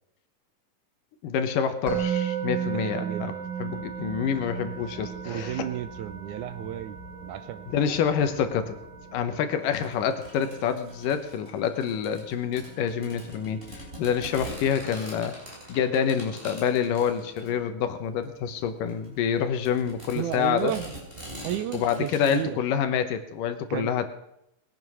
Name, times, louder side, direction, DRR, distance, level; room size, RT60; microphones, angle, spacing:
voice 1, 1.2-3.3 3.6-5.7 7.7-8.8 9.1-15.4 15.7-20.7 21.7-24.1, left 8 dB, 80° left, 8 dB, 2.6 m, -27 dB
Musical instrument, 1.9-13.0, right 8 dB, 35° right, 2.4 m, -36 dB
voice 2, 2.7-3.5 5.3-7.7 20.2-21.0 21.4-22.6 23.7-23.9, right 12 dB, 75° right, 12 dB, 2.0 m, -33 dB
sound 1, 3.7-9.4, left 1 dB, 15° left, 1.8 m, -49 dB
sound 2, 9.6-22.3, equal, 15° right, 4.6 m, -44 dB
20.5 x 9.0 x 6.2 m, 0.81 s
omnidirectional pair, 3.9 m